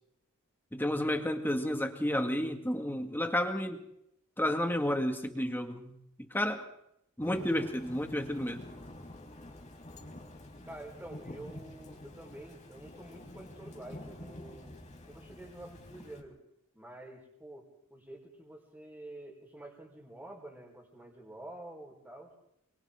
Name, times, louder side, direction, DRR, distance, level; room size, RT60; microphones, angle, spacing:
voice 1, 0.7-3.8 4.4-6.0 6.3-6.7 7.2-8.6, left 1 dB, 10° left, 5 dB, 2.1 m, -31 dB
Thunder / Rain, 7.2-16.2, left 1 dB, 35° left, 4.6 m, -48 dB
voice 2, 10.6-14.8 15.1-16.4 16.7-22.3, right 1 dB, 5° right, -4 dB, 4.7 m, -48 dB
28.5 x 25.0 x 3.8 m, 0.78 s
head